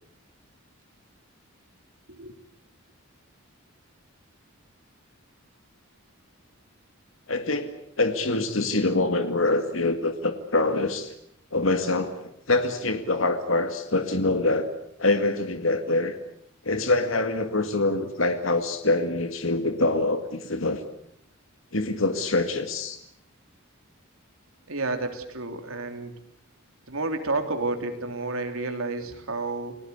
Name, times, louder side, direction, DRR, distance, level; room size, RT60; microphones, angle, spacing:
voice 1, 7.3-11.1 11.5-14.7 15.0-16.2 16.6-20.8 21.7-23.0, left 2 dB, 70° left, 7 dB, 2.1 m, -25 dB
voice 2, 24.7-26.1 26.9-29.8, right 3 dB, 80° right, 6 dB, 3.4 m, -30 dB
30.0 x 19.5 x 8.3 m, 0.73 s
head